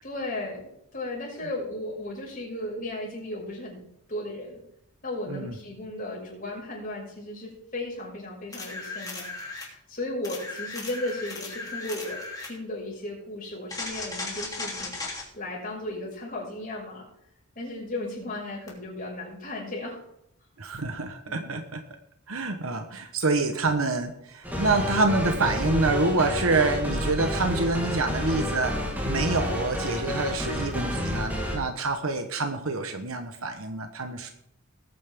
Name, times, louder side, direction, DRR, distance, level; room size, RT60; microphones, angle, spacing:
voice 1, 0.0-3.8 4.1-4.6 5.0-17.0 17.5-20.0 21.3-21.5, left 1 dB, 40° left, -2 dB, 5.9 m, -35 dB
sound 1, 8.5-9.7 10.2-12.6 13.7-15.3 18.7-18.8, left 3 dB, 20° left, 3.3 m, -36 dB
voice 2, 20.6-21.8 22.3-34.3, right 3 dB, 80° right, 6 dB, 1.2 m, -27 dB
sound 2, 24.4-31.6, equal, 10° right, 3.0 m, -29 dB
19.5 x 9.3 x 3.7 m, 0.77 s
head